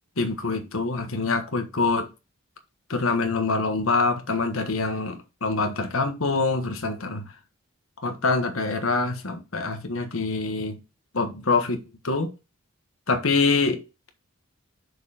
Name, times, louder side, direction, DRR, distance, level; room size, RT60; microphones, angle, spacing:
voice 1, 0.2-2.1 2.9-7.2 8.0-10.8 11.1-11.8 12.0-12.3 13.1-13.8, left 3 dB, 80° left, 1.4 m, -25 dB
6.5 x 4.6 x 5.0 m
head